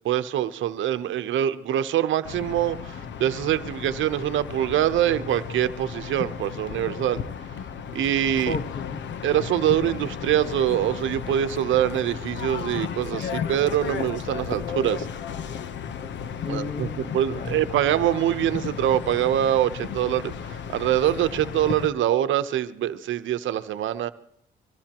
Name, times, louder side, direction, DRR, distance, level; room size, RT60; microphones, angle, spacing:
voice 1, 0.0-7.2 7.9-8.6 9.2-15.1 16.5-24.1, right 11 dB, 75° right, 0.9 m, -24 dB
sound 1, 2.2-21.9, left 7 dB, 65° left, 1.0 m, -34 dB
voice 2, 8.5-9.0 16.4-17.6, left 3 dB, 45° left, 1.2 m, -33 dB
24.0 x 18.0 x 3.0 m
cardioid pair, 90°, 20 cm